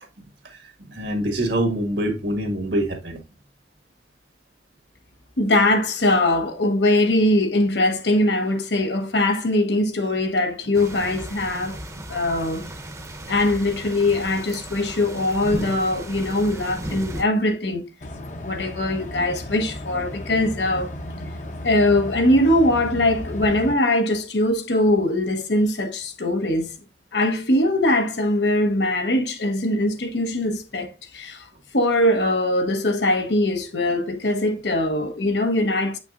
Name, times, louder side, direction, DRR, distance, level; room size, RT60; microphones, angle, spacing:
voice 1, 0.2-3.2 13.2-13.3, right 1 dB, 75° right, 1.7 m, -26 dB
voice 2, 5.4-11.8 12.1-12.6 13.3-17.9 18.4-20.9 21.6-26.7 27.1-31.5 31.7-36.0, left 1 dB, 80° left, 1.1 m, -21 dB
sound 1, 10.7-17.2, right 1 dB, 15° right, 0.8 m, -35 dB
sound 2, 18.0-23.7, left 1 dB, 45° left, 0.8 m, -35 dB
8.0 x 5.8 x 2.5 m
head